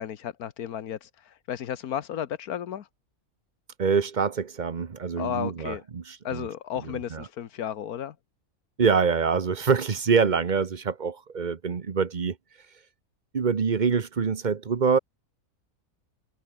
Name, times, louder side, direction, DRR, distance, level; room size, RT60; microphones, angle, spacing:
voice 1, 0.0-2.9 5.2-5.8 6.2-8.1, left 9 dB, 80° left, 1.5 m, -33 dB
voice 2, 3.8-6.5 6.9-7.2 8.8-12.4 13.3-15.0, right 5 dB, 35° right, 0.9 m, -25 dB
omnidirectional pair, 1.6 m